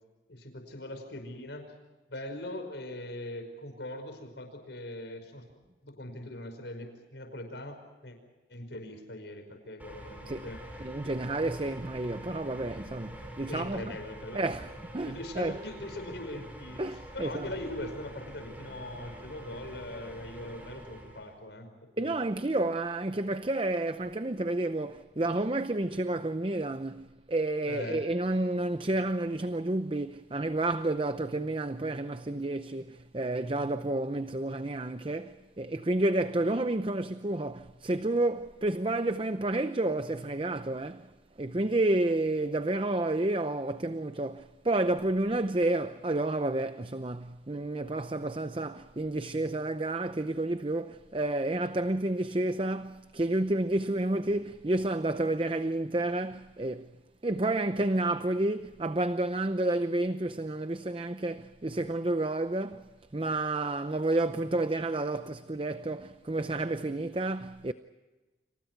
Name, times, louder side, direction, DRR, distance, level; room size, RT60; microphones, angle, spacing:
voice 1, 0.3-1.7 2.1-5.5 5.8-8.2 8.5-10.6 13.5-14.6 15.0-22.1 27.7-28.0, left 1 dB, 75° left, 5.4 m, -41 dB
sound 1, 9.8-21.4, right 1 dB, 10° right, 5.3 m, -46 dB
voice 2, 10.8-13.8 14.3-15.6 16.8-17.5 22.0-41.1 41.4-56.9 57.2-67.7, right 2 dB, 30° right, 0.7 m, -30 dB
30.0 x 27.5 x 4.6 m
head